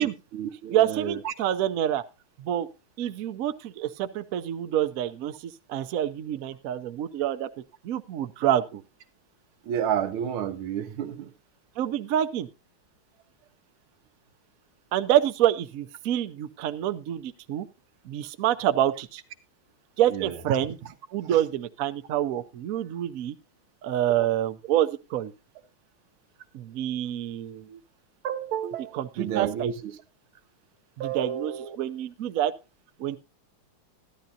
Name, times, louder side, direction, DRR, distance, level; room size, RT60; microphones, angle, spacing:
voice 1, 0.0-1.3 9.6-11.3 20.1-20.4 21.3-21.4 24.2-24.3 28.2-29.9 31.0-31.8, right 9 dB, 90° right, 1.7 m, -31 dB
voice 2, 0.7-2.0 2.4-2.7 3.0-7.5 7.8-8.8 11.8-12.5 14.9-17.7 18.0-19.2 20.0-20.8 21.1-23.4 23.8-25.3 26.5-27.8 28.9-29.7 31.0-32.5 33.0-33.2, right 11 dB, 70° right, 0.8 m, -27 dB
13.0 x 11.5 x 2.7 m
omnidirectional pair, 2.3 m